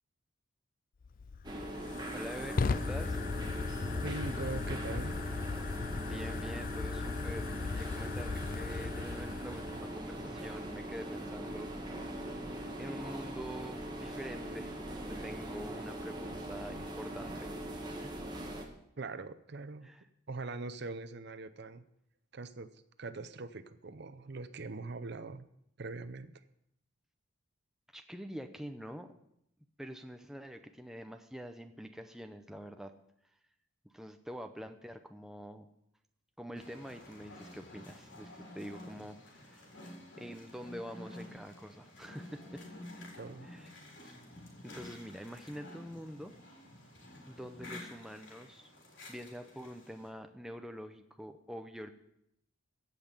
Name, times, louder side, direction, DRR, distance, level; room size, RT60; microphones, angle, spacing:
Fire, 1.0-10.0, left 4 dB, 40° left, 0.4 m, -37 dB
sound 1, 1.4-18.6, right 1 dB, 20° right, 1.6 m, -41 dB
voice 1, 2.1-3.2 5.9-11.7 12.8-18.1 19.8-20.0 27.9-29.1 29.8-32.9 33.8-35.7 36.4-39.9 40.2-42.6 43.4-43.7 44.0-44.2 44.6-46.3 47.3-48.7 49.1-51.9, equal, ahead, 6 dB, 0.6 m, -46 dB
voice 2, 4.0-5.2 19.0-19.9 20.3-21.8 22.3-22.7 23.0-25.5 25.8-26.3 43.2-43.5, right 3 dB, 50° right, 13 dB, 0.6 m, -42 dB
sound 2, 36.5-50.1, left 1 dB, 60° left, 3.8 m, -51 dB
16.0 x 5.8 x 8.2 m, 0.78 s
head